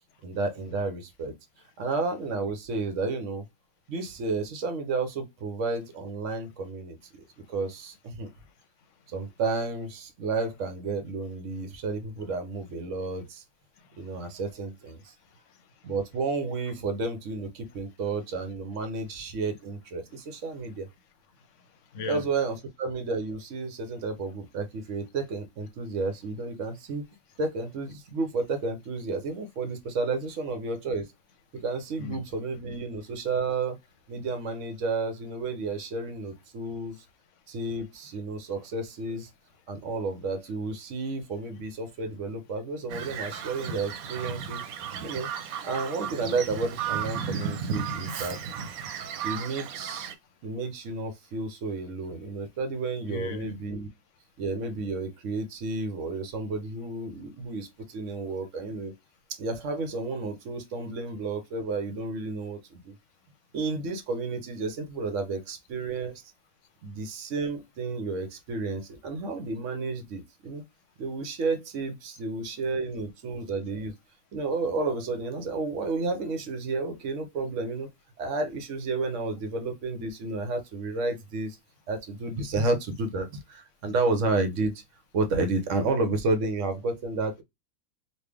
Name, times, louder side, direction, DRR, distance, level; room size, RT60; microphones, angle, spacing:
voice 1, 0.2-1.3 1.8-3.5 3.9-8.3 9.1-13.4 14.0-15.1 15.8-20.9 22.1-27.0 27.4-31.1 31.5-33.8 34.1-37.0 37.5-39.3 39.7-44.6 45.0-45.3 45.6-48.5 49.2-50.1 50.4-53.9 54.4-58.9 59.4-62.9 63.5-66.2 66.8-70.6 71.0-73.9 74.3-77.9 78.2-81.6 81.9-84.8 85.1-87.4, right 3 dB, 65° right, 1.0 m, -31 dB
voice 2, 8.2-9.1 13.7-14.4 15.0-15.9 20.1-20.9 21.3-22.3 31.5-31.6 32.0-32.2 36.9-37.0 37.3-37.4 39.8-39.9 45.0-45.1 48.9-49.1 50.2-50.5 53.0-53.5, left 4 dB, 65° left, 0.9 m, -44 dB
Bird vocalization bird call bird song, 42.9-50.1, right 7 dB, 85° right, 1.1 m, -34 dB
3.2 x 2.4 x 3.3 m
omnidirectional pair, 1.5 m